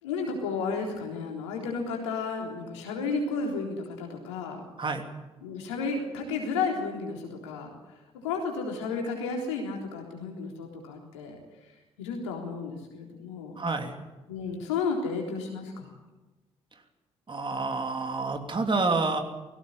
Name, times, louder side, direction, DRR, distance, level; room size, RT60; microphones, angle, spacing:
voice 1, 0.0-4.6 5.4-7.7 8.1-11.4 12.0-13.6 14.3-16.0, left 4 dB, 80° left, 1 dB, 3.7 m, -32 dB
voice 2, 13.6-14.0 17.3-19.2, right 3 dB, 35° right, 5 dB, 3.0 m, -28 dB
18.5 x 16.5 x 9.7 m, 1.1 s
figure-of-eight pair, 40°, 15 cm